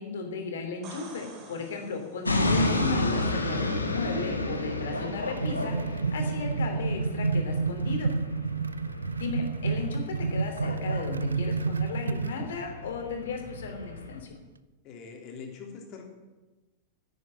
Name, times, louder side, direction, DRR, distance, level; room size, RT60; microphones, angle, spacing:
voice 1, 0.0-8.1 9.1-14.4, left 5 dB, 60° left, 4 dB, 3.1 m, -35 dB
sound 1, 0.6-2.6 6.3-6.4, right 4 dB, 35° right, 3.2 m, -48 dB
sound 2, 2.2-14.2, left 1 dB, 80° left, 1.6 m, -32 dB
sound 3, 4.9-12.4, right 4 dB, 75° right, 0.5 m, -30 dB
voice 2, 14.8-16.0, left 5 dB, 40° left, 2 dB, 3.4 m, -43 dB
11.0 x 9.1 x 9.8 m, 1.1 s
figure-of-eight pair, 90°, 0 cm